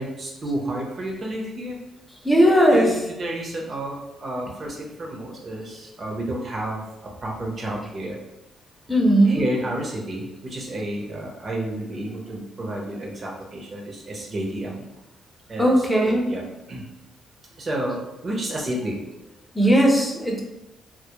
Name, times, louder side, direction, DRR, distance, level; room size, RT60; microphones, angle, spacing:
voice 1, 0.0-1.8 2.7-8.2 9.3-14.8 15.5-16.8 17.6-19.0, right 1 dB, 40° right, -1 dB, 0.7 m, -31 dB
voice 2, 2.2-3.0 8.9-9.5 15.6-16.2 19.5-20.4, equal, ahead, -1 dB, 0.5 m, -17 dB
2.2 x 2.0 x 2.9 m, 0.98 s
cardioid pair, 90°, 0 cm